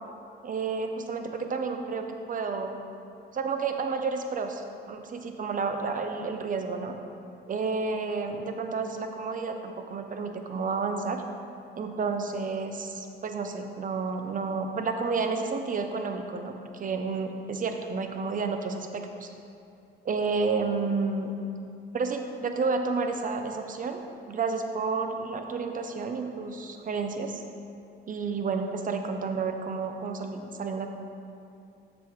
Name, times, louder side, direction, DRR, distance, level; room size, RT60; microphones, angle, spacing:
voice 1, 0.4-2.8 3.3-7.0 7.5-11.2 11.8-19.3 20.0-21.3 21.9-24.0 24.3-27.4 28.1-30.9, right 4 dB, 40° right, 5 dB, 0.7 m, -31 dB
7.3 x 6.2 x 3.6 m, 2.5 s
cardioid pair, 90°, 20 cm